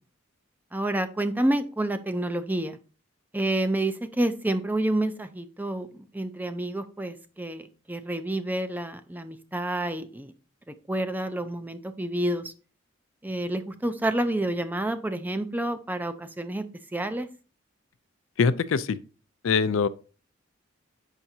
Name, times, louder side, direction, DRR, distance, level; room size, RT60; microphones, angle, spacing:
voice 1, 0.7-2.8 3.3-10.3 10.7-12.5 13.2-16.6 16.9-17.3, right 1 dB, 10° right, 0.4 m, -29 dB
voice 2, 18.4-19.0 19.4-19.9, left 5 dB, 75° left, 0.4 m, -23 dB
7.3 x 5.7 x 2.7 m
head